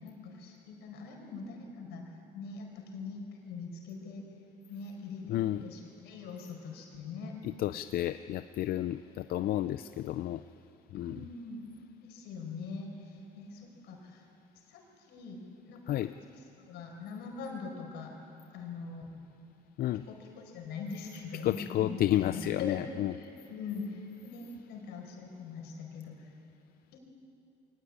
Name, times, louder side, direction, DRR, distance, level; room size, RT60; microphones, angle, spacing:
voice 1, 0.0-2.7 2.9-4.2 4.7-7.3 10.9-11.6 12.0-14.3 14.7-18.1 18.5-19.1 20.1-26.3 26.9-27.0, left 4 dB, 85° left, 2 dB, 5.0 m, -42 dB
voice 2, 5.3-5.6 7.6-10.4 10.9-11.2 15.9-16.1 19.8-20.1 21.4-23.1, left 13 dB, 65° left, 12 dB, 0.5 m, -31 dB
22.0 x 18.5 x 9.6 m, 2.7 s
cardioid pair, 110°, 17 cm